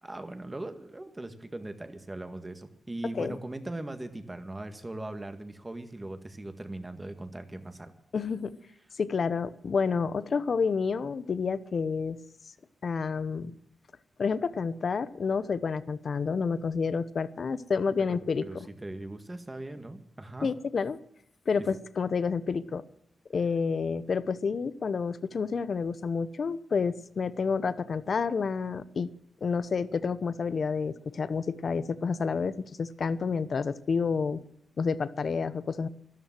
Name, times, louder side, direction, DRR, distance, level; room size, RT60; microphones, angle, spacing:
voice 1, 0.0-7.9 18.1-20.5, right 2 dB, 20° right, 8 dB, 1.9 m, -40 dB
voice 2, 8.1-8.5 9.0-12.2 12.8-13.5 14.2-18.7 20.4-21.0 21.5-22.8 23.3-29.1 29.4-34.4 34.8-35.9, left 5 dB, 55° left, 15 dB, 1.0 m, -29 dB
13.0 x 13.0 x 7.7 m, 0.73 s
cardioid pair, 95°, 0 cm